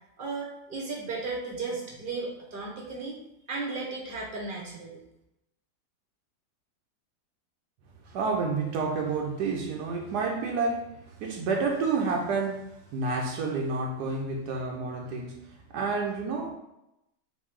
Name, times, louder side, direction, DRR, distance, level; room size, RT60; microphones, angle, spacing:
voice 1, 0.2-3.2 3.5-5.0, right 3 dB, 35° right, -3 dB, 1.0 m, -35 dB
voice 2, 8.0-16.5, right 4 dB, 75° right, 1 dB, 1.2 m, -30 dB
4.0 x 3.1 x 3.6 m, 0.85 s
omnidirectional pair, 1.8 m